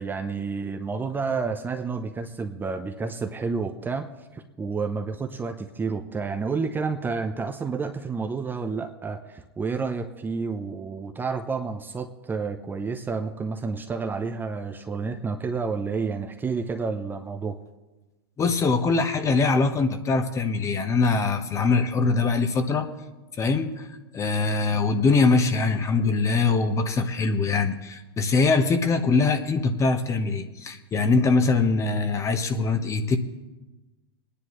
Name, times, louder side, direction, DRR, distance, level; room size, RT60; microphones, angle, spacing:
voice 1, 0.0-17.6, right 4 dB, 15° right, 5 dB, 0.7 m, -30 dB
voice 2, 18.4-22.9 23.4-23.9 24.1-33.2, left 4 dB, 25° left, 7 dB, 1.1 m, -22 dB
23.5 x 10.0 x 3.2 m, 1.1 s
hypercardioid pair, 110°, 13 cm